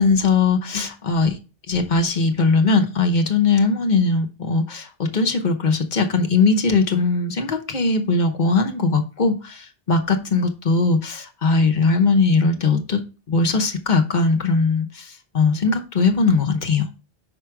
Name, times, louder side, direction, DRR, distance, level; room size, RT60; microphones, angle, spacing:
voice 1, 0.0-1.3 1.7-4.9 5.1-13.0 13.3-14.9 15.3-16.9, left 4 dB, 50° left, 1.0 m, -19 dB
5.4 x 5.0 x 4.6 m
omnidirectional pair, 1.0 m